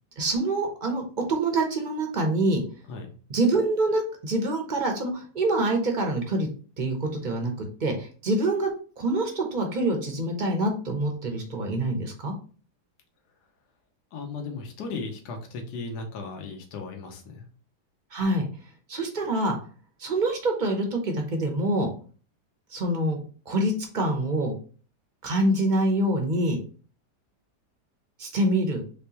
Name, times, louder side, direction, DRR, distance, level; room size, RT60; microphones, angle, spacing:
voice 1, 0.2-1.0 1.3-2.6 3.3-6.5 6.8-7.5 7.8-8.7 9.0-12.3 18.1-18.4 18.9-19.5 20.0-21.9 22.7-23.2 23.5-24.5 25.2-26.6 28.2-28.8, right 1 dB, 40° right, 3 dB, 0.7 m, -25 dB
voice 2, 14.1-17.4, left 4 dB, 75° left, 3 dB, 1.4 m, -36 dB
4.3 x 3.3 x 2.9 m, 0.40 s
omnidirectional pair, 1.8 m